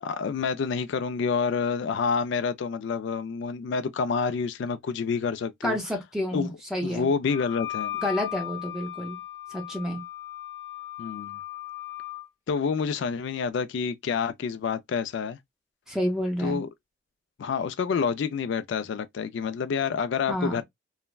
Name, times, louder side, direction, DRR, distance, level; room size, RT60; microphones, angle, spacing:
voice 1, 0.0-5.8 6.3-6.5 6.8-8.0 11.0-11.4 12.5-15.4 16.4-16.7 17.4-20.6, left 5 dB, 65° left, 0.3 m, -28 dB
voice 2, 5.6-7.1 8.0-9.2 9.5-10.0 15.9-16.6 20.3-20.6, equal, 5° right, 0.6 m, -29 dB
Wind instrument woodwind instrument, 7.3-12.2, left 13 dB, 40° left, 0.8 m, -37 dB
3.2 x 2.1 x 2.2 m
head